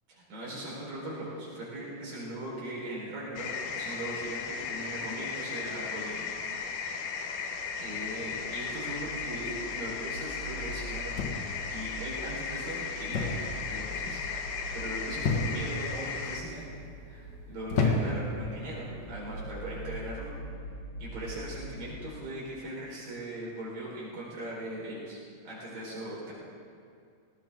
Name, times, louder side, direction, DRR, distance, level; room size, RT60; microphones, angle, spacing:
voice 1, 0.1-6.3 7.8-11.2 11.7-13.4 13.7-16.6 17.1-20.3 21.0-25.2 25.4-26.3, right 1 dB, 85° right, -6 dB, 6.4 m, -39 dB
sound 1, 3.4-16.4, left 5 dB, 75° left, 2.5 m, -36 dB
sound 2, 7.3-22.1, right 1 dB, 60° right, 4.0 m, -44 dB
sound 3, 11.2-11.7 13.1-13.5 13.8-14.2 15.2-15.8 16.5-16.9 17.7-18.3 19.3-19.6, left 3 dB, 45° left, 1.6 m, -29 dB
20.0 x 18.5 x 3.8 m, 2.3 s
omnidirectional pair, 3.9 m